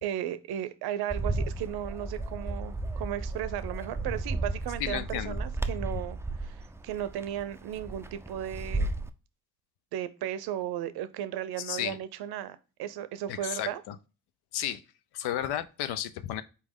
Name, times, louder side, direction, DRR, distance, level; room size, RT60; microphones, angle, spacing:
voice 1, 0.0-8.9 9.9-13.8, right 11 dB, 75° right, 0.6 m, -35 dB
Bird, 1.1-9.1, right 2 dB, 5° right, 0.3 m, -34 dB
voice 2, 4.8-5.4 11.6-12.0 13.3-14.0 14.5-14.8 15.1-16.4, left 11 dB, 80° left, 0.6 m, -33 dB
4.2 x 3.0 x 3.6 m
supercardioid pair, 60°, 38 cm